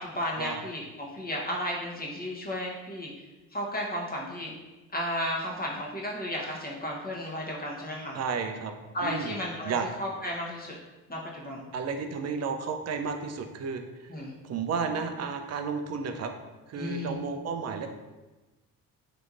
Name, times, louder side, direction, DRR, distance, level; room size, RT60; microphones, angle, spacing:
voice 1, 0.0-3.1 3.5-4.5 4.9-8.2 8.9-9.7 10.0-10.8 11.1-11.7 14.1-14.3 16.8-17.2, equal, 20° left, -3 dB, 0.9 m, -33 dB
voice 2, 8.1-8.7 9.0-9.4 9.6-9.9 11.7-14.1 14.4-16.3 16.7-17.9, right 5 dB, 40° right, 6 dB, 0.5 m, -32 dB
3.5 x 2.9 x 2.5 m, 1.1 s
hypercardioid pair, 55°, 42 cm